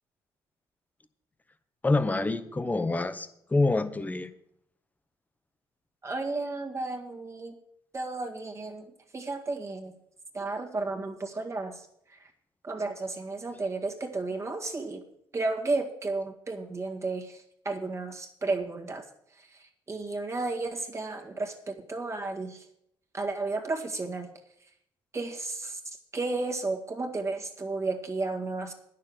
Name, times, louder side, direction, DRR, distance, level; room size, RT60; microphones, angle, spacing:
voice 1, 1.8-4.3, left 2 dB, 15° left, 12 dB, 0.9 m, -26 dB
voice 2, 6.0-7.6 7.9-9.9 10.3-12.3 12.6-15.0 15.3-19.1 19.4-22.7 23.1-24.3 25.1-25.8 26.1-28.7, right 3 dB, 30° right, 3 dB, 1.8 m, -33 dB
9.7 x 6.7 x 8.8 m, 0.73 s
cardioid pair, 85°, 9 cm